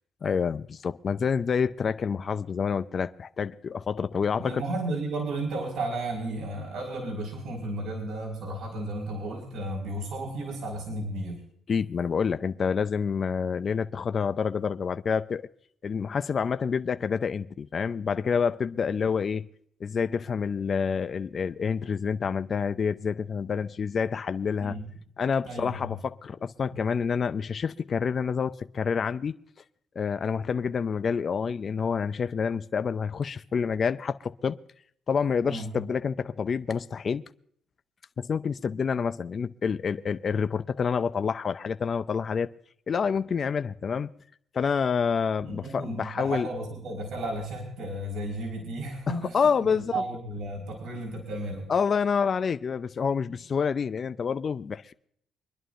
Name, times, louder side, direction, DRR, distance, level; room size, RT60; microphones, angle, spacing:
voice 1, 0.2-4.6 11.7-15.4 15.8-19.4 19.8-24.8 25.2-29.4 30.0-34.6 35.1-37.2 38.2-42.5 42.9-44.1 44.5-46.5 49.1-50.0 51.7-54.9, left 6 dB, 45° left, 0.5 m, -28 dB
voice 2, 4.4-11.4 24.6-24.8 25.4-25.9 35.4-35.7 45.4-51.7, right 2 dB, 75° right, 4.7 m, -33 dB
25.5 x 11.0 x 2.5 m
cardioid pair, 90°, 0 cm